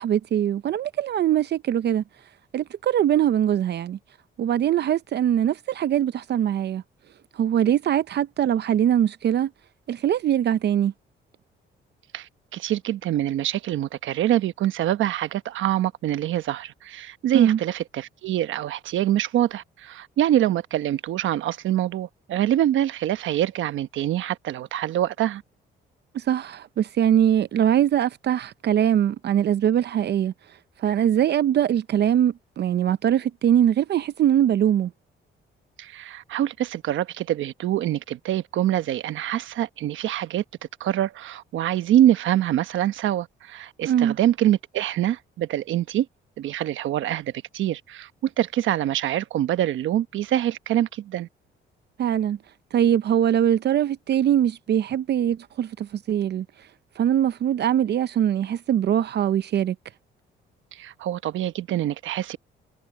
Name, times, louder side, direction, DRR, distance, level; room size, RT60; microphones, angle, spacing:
voice 1, 0.0-2.0 2.5-4.0 4.4-6.8 7.3-9.5 9.9-10.9 17.3-17.6 26.1-30.3 30.8-34.9 43.8-44.2 52.0-52.4 52.7-56.5 57.0-59.8, right 10 dB, 55° right, 0.6 m, -22 dB
voice 2, 12.1-25.4 35.8-40.4 40.8-46.1 46.4-51.3 60.7-62.4, right 12 dB, 75° right, 1.1 m, -25 dB
cardioid pair, 90°, 20 cm